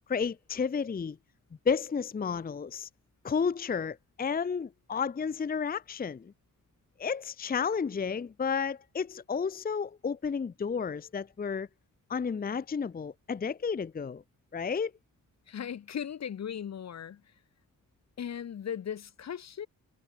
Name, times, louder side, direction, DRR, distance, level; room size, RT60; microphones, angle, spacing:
voice 1, 0.1-1.2 1.7-2.9 3.2-6.3 7.0-11.7 12.1-14.2 14.5-14.9, left 6 dB, 25° left, 0.6 m, -32 dB
voice 2, 15.5-17.2 18.2-19.7, left 8 dB, 50° left, 0.9 m, -37 dB
wide cardioid pair, 115°, 33 cm